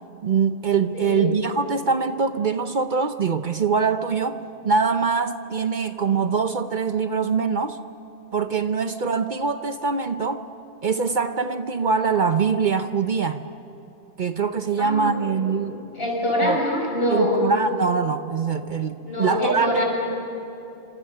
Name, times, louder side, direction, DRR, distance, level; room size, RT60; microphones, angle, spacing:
voice 1, 0.2-4.4 4.6-7.8 8.3-10.5 10.8-13.4 14.2-15.8 16.4-16.6 17.1-19.8, right 5 dB, 50° right, 9 dB, 0.9 m, -23 dB
voice 2, 0.9-1.3 14.8-15.5 16.0-17.4 19.0-19.8, left 1 dB, 60° left, 0 dB, 6.2 m, -24 dB
27.0 x 27.0 x 6.7 m, 3.0 s
omnidirectional pair, 1.1 m